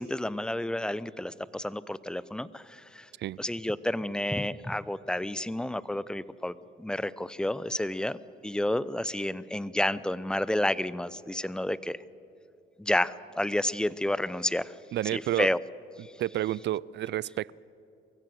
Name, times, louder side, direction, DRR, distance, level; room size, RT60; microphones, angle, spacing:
voice 1, 0.0-3.1 3.4-6.5 6.8-8.2 8.4-12.0 12.8-14.7 15.1-15.6 16.0-16.1, left 1 dB, 5° left, 18 dB, 0.5 m, -30 dB
voice 2, 14.9-15.5 16.2-17.5, right 13 dB, 60° right, 24 dB, 0.4 m, -30 dB
23.0 x 15.5 x 7.8 m, 2.7 s
cardioid pair, 90°, 20 cm